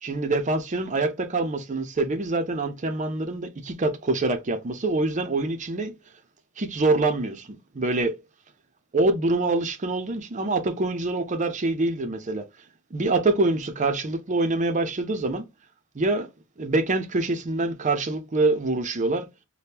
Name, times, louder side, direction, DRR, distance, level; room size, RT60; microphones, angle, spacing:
voice 1, 0.0-5.9 6.6-8.2 8.9-12.5 12.9-15.4 15.9-16.3 16.6-19.3, right 2 dB, 35° right, 0.5 m, -25 dB
3.5 x 2.2 x 2.8 m
head